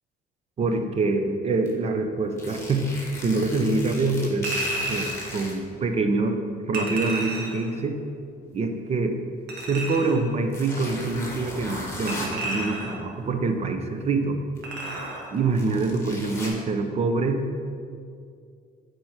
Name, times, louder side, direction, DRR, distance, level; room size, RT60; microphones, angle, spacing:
voice 1, 0.6-2.9 3.2-4.5 4.9-6.4 6.7-8.0 8.5-9.1 9.7-14.4 15.3-17.4, right 3 dB, 40° right, 6 dB, 0.8 m, -25 dB
sound 1, 1.7-1.8 2.3-5.5 6.4-6.5 9.5-9.6 10.5-12.3 14.6-14.7 15.2-16.5, left 1 dB, 15° left, 1.8 m, -37 dB
Chink clink, 4.4-5.2 6.7-7.7 9.5-10.2 12.1-13.0 14.6-15.3 15.6-15.8, right 1 dB, 80° right, 1.5 m, -32 dB
8.8 x 4.6 x 4.9 m, 2.3 s
cardioid pair, 110°, 17 cm